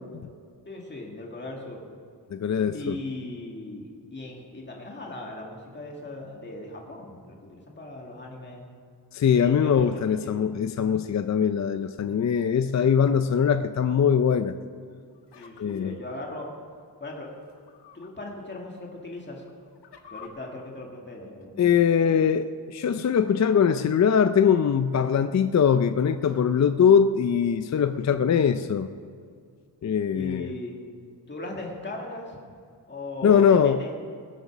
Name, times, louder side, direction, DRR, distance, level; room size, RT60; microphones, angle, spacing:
voice 1, 0.7-1.9 2.7-8.6 9.4-10.3 15.4-16.5 17.0-17.3 17.9-19.4 20.1-21.8 30.1-30.8 31.3-32.4 32.9-33.9, left 2 dB, 25° left, -1 dB, 2.1 m, -38 dB
voice 2, 2.3-3.0 9.1-14.5 15.6-16.0 21.6-28.9 29.8-30.5 33.2-33.8, left 7 dB, 40° left, 10 dB, 0.4 m, -22 dB
sound 1, 15.1-16.5 17.4-18.1 18.5-18.6 19.3-20.3, left 7 dB, 70° left, 1.3 m, -50 dB
20.5 x 8.0 x 6.1 m, 2.2 s
wide cardioid pair, 130°, 42 cm